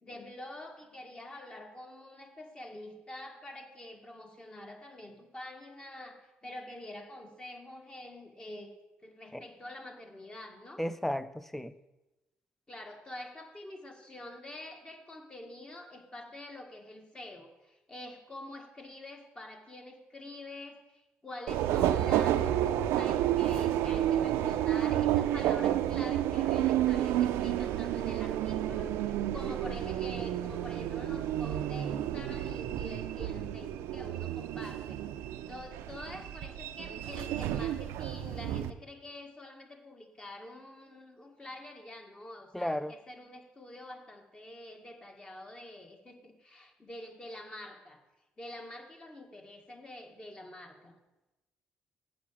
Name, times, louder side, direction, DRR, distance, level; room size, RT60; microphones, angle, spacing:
voice 1, 0.0-8.7 9.0-10.8 12.7-35.0 35.5-48.0 48.4-51.0, left 1 dB, 20° left, 3 dB, 1.7 m, -47 dB
voice 2, 10.8-11.7 42.5-42.9, left 1 dB, 5° left, 14 dB, 0.5 m, -33 dB
Subway metro underground, 21.5-38.7, right 11 dB, 90° right, 0.5 m, -30 dB
8.6 x 5.8 x 7.2 m, 1.0 s
cardioid pair, 90°, 4 cm